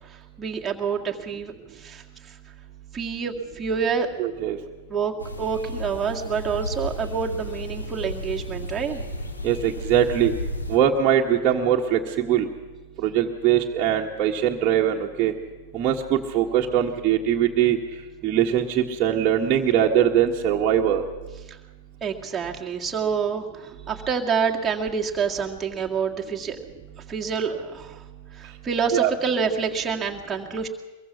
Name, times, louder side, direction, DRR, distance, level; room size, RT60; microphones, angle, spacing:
voice 1, 0.0-2.4 2.9-4.1 4.9-9.0 21.5-21.6 22.0-26.6 27.1-28.0 28.3-30.7, right 6 dB, 15° right, -1 dB, 2.0 m, -27 dB
voice 2, 4.2-4.6 9.4-10.3 10.7-12.5 13.0-15.3 15.7-17.8 18.2-21.0 28.9-29.1, right 10 dB, 35° right, -2 dB, 1.6 m, -21 dB
sound 1, 5.2-10.8, equal, 80° left, 2.5 m, -33 dB
23.5 x 22.0 x 5.8 m, 1.2 s
figure-of-eight pair, 90°, 0 cm